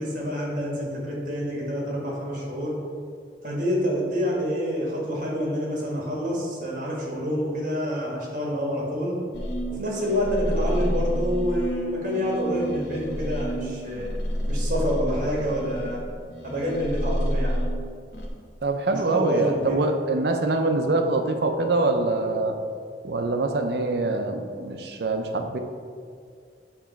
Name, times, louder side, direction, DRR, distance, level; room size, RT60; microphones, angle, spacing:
voice 1, 0.0-2.8 3.4-9.2 9.7-14.1 14.5-16.0 16.4-17.5 18.9-19.8, equal, 50° right, -3 dB, 1.6 m, -27 dB
sound 1, 9.3-18.3, equal, 65° left, 0.9 m, -29 dB
voice 2, 18.6-22.6 23.0-25.6, right 2 dB, 65° right, 5 dB, 0.6 m, -24 dB
7.1 x 3.0 x 5.6 m, 2.2 s
head